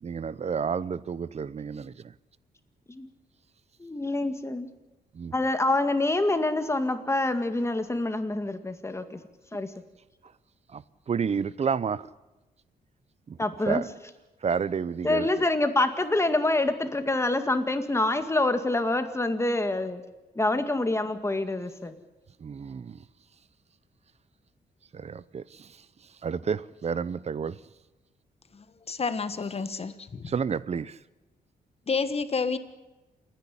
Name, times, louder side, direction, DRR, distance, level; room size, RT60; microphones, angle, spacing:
voice 1, 0.0-2.1 5.1-5.3 10.2-10.3 10.7-12.1 13.3-13.4 13.7-13.9 14.4-15.5 22.4-23.0 24.9-27.6 30.2-31.0, right 6 dB, 40° right, 0.7 m, -31 dB
voice 2, 3.8-4.7 5.3-9.2 9.5-9.7 13.4-13.8 15.0-20.0 20.4-22.0, left 2 dB, 15° left, 2.0 m, -26 dB
voice 3, 28.5-30.3 31.9-32.6, left 4 dB, 40° left, 1.4 m, -30 dB
28.5 x 10.5 x 9.9 m
cardioid pair, 100°, 16 cm